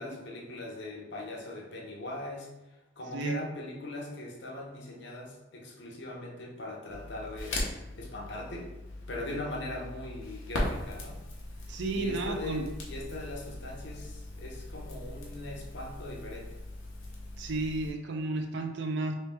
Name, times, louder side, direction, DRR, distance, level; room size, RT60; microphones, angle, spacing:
voice 1, 0.0-2.5 3.0-7.6 8.0-8.7 9.1-11.2 11.9-16.5, left 2 dB, 60° left, -1 dB, 0.8 m, -40 dB
voice 2, 3.1-3.4 11.7-12.7 17.4-19.1, right 2 dB, 65° right, 4 dB, 0.5 m, -32 dB
Crackle, 6.9-17.9, left 1 dB, 85° left, 0.9 m, -39 dB
3.2 x 3.1 x 3.3 m, 1.0 s
head